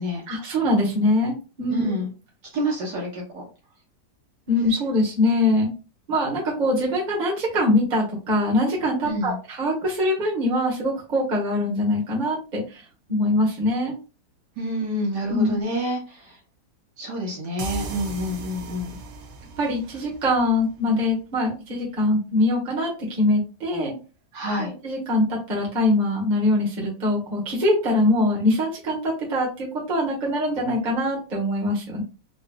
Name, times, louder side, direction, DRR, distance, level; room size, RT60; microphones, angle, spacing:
voice 1, 0.3-1.9 4.5-5.7 6.1-9.3 9.6-12.8 13.1-13.9 15.2-15.6 19.6-23.9 24.6-32.0, left 1 dB, 30° right, -4 dB, 1.1 m, -23 dB
voice 2, 1.7-2.1 2.5-3.5 9.0-9.4 14.6-16.4 17.0-19.0 24.3-24.7, equal, 65° right, -3 dB, 1.6 m, -28 dB
sound 1, 17.6-21.1, right 3 dB, 85° right, 0.6 m, -38 dB
3.8 x 2.5 x 2.3 m, 0.33 s
omnidirectional pair, 2.0 m